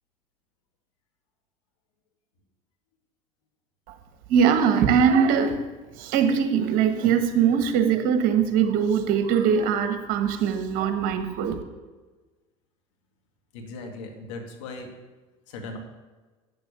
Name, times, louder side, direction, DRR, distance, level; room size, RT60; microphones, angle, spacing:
voice 1, 4.3-5.6 5.9-11.6, right 7 dB, 65° right, 7 dB, 1.4 m, -21 dB
voice 2, 13.5-14.9 15.5-15.8, left 3 dB, 80° left, 3 dB, 2.0 m, -38 dB
9.0 x 7.1 x 6.8 m, 1.3 s
hypercardioid pair, 80°, 16 cm